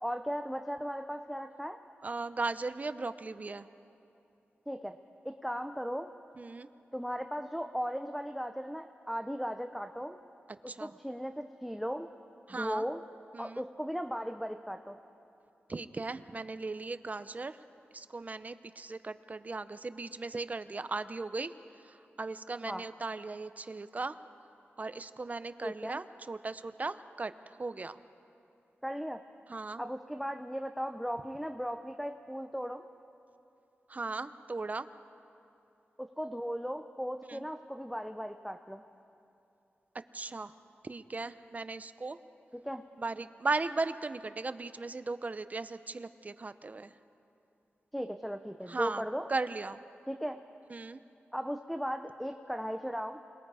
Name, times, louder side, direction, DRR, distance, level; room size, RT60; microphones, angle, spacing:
voice 1, 0.0-1.8 4.7-5.0 5.2-6.1 6.9-10.2 10.6-12.1 12.5-13.0 13.4-15.0 22.6-22.8 25.6-26.0 28.8-29.2 29.8-32.8 36.0-38.8 42.6-42.8 47.9-49.3 50.1-50.4 51.3-53.2, equal, ahead, 8 dB, 0.7 m, -37 dB
voice 2, 2.0-3.7 6.4-6.7 10.7-11.0 12.5-12.8 13.3-13.6 15.7-17.6 17.9-21.5 21.8-24.2 24.8-28.0 29.5-29.8 33.9-34.9 37.3-37.5 40.1-40.5 40.8-42.2 43.0-46.9 48.7-49.0 49.3-49.8 50.7-51.0, right 3 dB, 40° right, 12 dB, 0.7 m, -37 dB
27.0 x 20.5 x 4.9 m, 2.7 s
wide cardioid pair, 85°, 4 cm